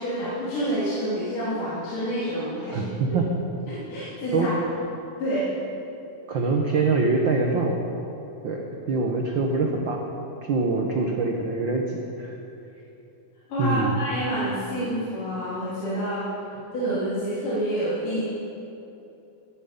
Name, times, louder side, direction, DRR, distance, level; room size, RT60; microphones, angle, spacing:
voice 1, 0.0-3.2 3.7-4.5 5.2-5.5 13.5-16.3 16.7-18.2, right 1 dB, 70° left, -11 dB, 5.0 m, -28 dB
voice 2, 2.7-3.3 4.3-4.5 6.3-7.7 8.4-8.6 8.9-10.0 10.4-12.3 13.6-14.0, right 3 dB, 75° right, 0 dB, 1.1 m, -24 dB
15.5 x 13.5 x 5.3 m, 2.9 s
omnidirectional pair, 3.9 m